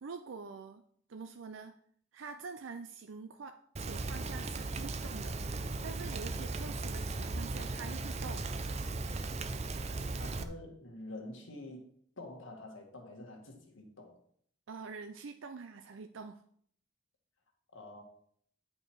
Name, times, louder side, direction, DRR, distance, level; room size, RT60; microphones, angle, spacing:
voice 1, 0.0-0.8 1.1-1.7 2.1-5.4 5.8-8.5 14.7-16.4, right 5 dB, 85° right, 8 dB, 0.5 m, -46 dB
Rain, 3.8-10.4, right 3 dB, 35° right, 0.5 m, -37 dB
voice 2, 10.2-11.9 12.2-14.2 17.7-18.0, left 2 dB, 85° left, 2 dB, 1.9 m, -47 dB
9.4 x 5.3 x 4.6 m, 0.63 s
head